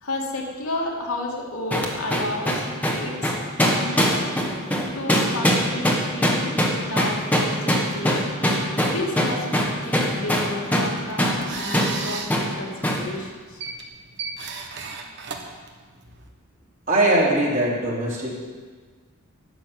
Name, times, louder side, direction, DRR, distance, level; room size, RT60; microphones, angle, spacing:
voice 1, 0.0-4.2 4.9-8.3 8.9-13.6, left 2 dB, 80° left, -2 dB, 2.6 m, -32 dB
sound 1, 1.7-10.9 11.2-11.4 11.7-11.9 12.3-12.5 12.8-13.0, equal, 5° left, 1.6 m, -21 dB
sound 2, 10.6-16.3, right 4 dB, 55° right, 1.4 m, -36 dB
voice 2, 16.9-18.4, right 1 dB, 40° right, -4 dB, 3.4 m, -21 dB
12.5 x 7.2 x 9.0 m, 1.5 s
head